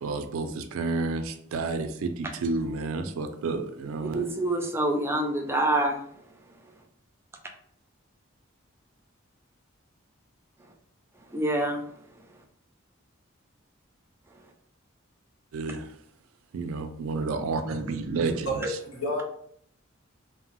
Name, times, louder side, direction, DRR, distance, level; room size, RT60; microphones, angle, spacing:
voice 1, 0.0-4.4 15.5-15.9 16.5-18.8, right 3 dB, 85° right, 0.4 m, -30 dB
voice 2, 4.0-6.0 11.3-11.8, right 1 dB, 10° right, 0.4 m, -26 dB
voice 3, 18.4-19.2, equal, 90° left, 0.9 m, -30 dB
2.9 x 2.0 x 2.9 m
head